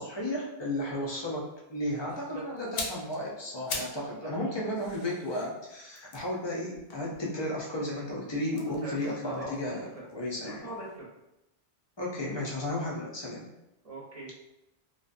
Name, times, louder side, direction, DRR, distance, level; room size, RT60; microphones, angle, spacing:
voice 1, 0.0-10.7 12.0-13.4, left 1 dB, 40° left, -4 dB, 0.4 m, -34 dB
sound 1, 2.6-4.1 4.4-7.6 8.5-10.5 10.8-11.0, left 3 dB, 65° left, 0.7 m, -42 dB
voice 2, 4.0-4.3 8.5-10.1 10.4-11.1 13.8-14.3, right 1 dB, 35° right, -4 dB, 0.8 m, -41 dB
2.7 x 2.2 x 2.4 m, 0.92 s
omnidirectional pair, 1.1 m